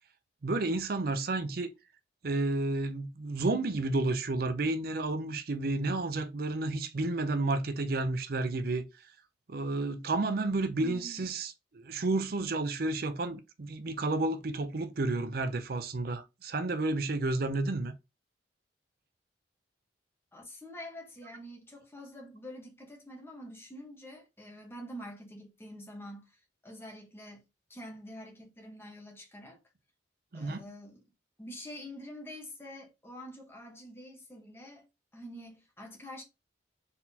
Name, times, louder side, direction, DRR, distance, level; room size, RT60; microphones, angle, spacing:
voice 1, 0.4-1.7 2.2-8.9 9.5-17.9 30.3-30.7, right 2 dB, 55° right, 0.5 m, -31 dB
voice 2, 10.8-11.3 20.3-27.4 27.7-29.6 30.3-31.0 31.4-34.9 35.1-36.2, equal, 15° left, 1.2 m, -46 dB
4.1 x 4.0 x 2.8 m
head